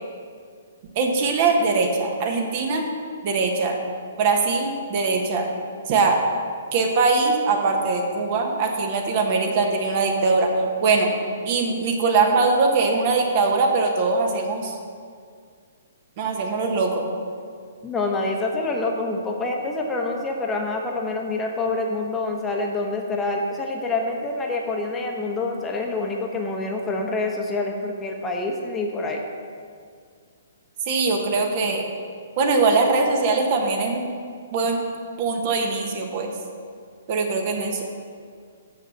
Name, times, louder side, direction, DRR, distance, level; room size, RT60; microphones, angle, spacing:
voice 1, 0.9-2.8 3.2-3.8 4.2-5.5 5.9-6.2 6.7-10.5 10.8-11.1 11.4-14.8 16.2-17.0 30.9-31.9 32.4-34.1 34.5-34.8 35.2-36.3 37.1-37.8, right 4 dB, 40° right, 2 dB, 1.3 m, -21 dB
voice 2, 17.8-29.2, left 2 dB, 15° left, 1 dB, 1.0 m, -26 dB
6.5 x 6.3 x 7.0 m, 2.1 s
figure-of-eight pair, 125°, 0 cm